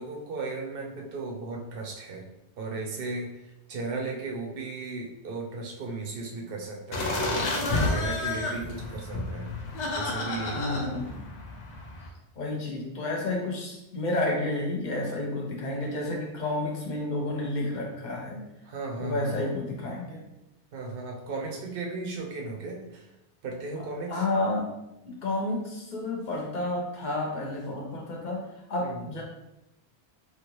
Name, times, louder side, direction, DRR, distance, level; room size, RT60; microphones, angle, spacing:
voice 1, 0.0-2.3 2.6-9.5 9.9-10.8 18.6-19.5 20.7-23.1 23.4-24.2 28.8-29.0, right 3 dB, 60° right, 0 dB, 0.7 m, -36 dB
sound 1, 6.9-12.1, left 2 dB, 85° left, 1.0 m, -31 dB
voice 2, 10.5-11.1 12.4-18.4 19.0-20.2 23.8-24.7 25.0-28.4 28.7-29.2, left 2 dB, 45° left, 0 dB, 0.8 m, -30 dB
3.1 x 2.4 x 3.1 m, 0.91 s
omnidirectional pair, 1.2 m